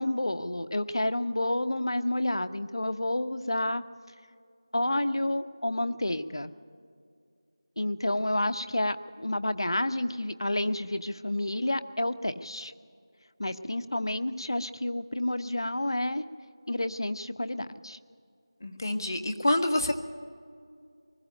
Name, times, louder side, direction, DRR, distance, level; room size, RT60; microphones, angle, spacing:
voice 1, 0.0-3.8 4.7-6.5 7.8-12.7 13.4-16.2 16.7-18.0, left 1 dB, 70° left, 11 dB, 0.9 m, -30 dB
voice 2, 18.6-19.9, left 1 dB, 45° left, 5 dB, 1.4 m, -27 dB
20.0 x 14.0 x 9.3 m, 2.3 s
figure-of-eight pair, 170°, 3 cm